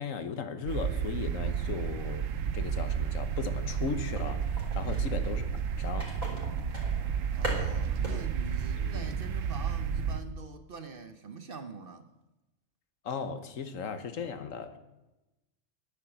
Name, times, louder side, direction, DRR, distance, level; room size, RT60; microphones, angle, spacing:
voice 1, 0.0-2.2 2.5-4.5 4.7-5.5 5.8-6.1 8.8-9.1 13.0-14.7, left 6 dB, 75° left, 1.4 m, -36 dB
sound 1, 0.7-10.2, right 7 dB, 70° right, 1.1 m, -31 dB
sound 2, 3.7-5.3 6.0-8.2 8.4-8.6 9.0-9.1, equal, 25° right, 3.6 m, -39 dB
voice 2, 4.7-5.0 7.4-12.1, right 4 dB, 50° right, 0.9 m, -44 dB
11.0 x 10.5 x 7.0 m
omnidirectional pair, 1.4 m